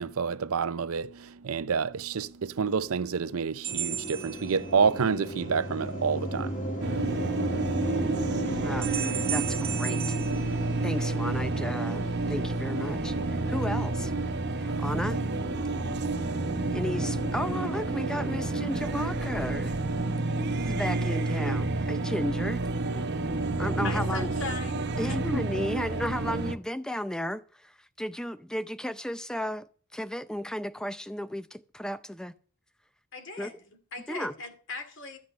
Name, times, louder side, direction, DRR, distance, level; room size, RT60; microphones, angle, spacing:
voice 1, 0.0-6.6 7.0-7.1 7.4-7.9, right 5 dB, 70° right, 0.6 m, -29 dB
sound 1, 3.6-20.8, equal, 35° left, 2.4 m, -37 dB
sound 2, 3.6-5.2 8.8-11.3, right 10 dB, 25° right, 1.3 m, -35 dB
sound 3, 6.8-26.6, right 2 dB, 50° right, 0.9 m, -30 dB
voice 2, 9.3-10.1 10.8-14.1 14.6-15.2 16.7-19.7 20.6-22.6 22.9-23.0 23.6-24.3 25.0-27.4 28.0-29.7 29.9-32.4 33.4-33.5 34.1-34.3, equal, 5° left, 0.5 m, -34 dB
voice 3, 23.8-25.2 33.1-35.2, left 3 dB, 55° left, 2.4 m, -39 dB
13.5 x 7.8 x 6.6 m
head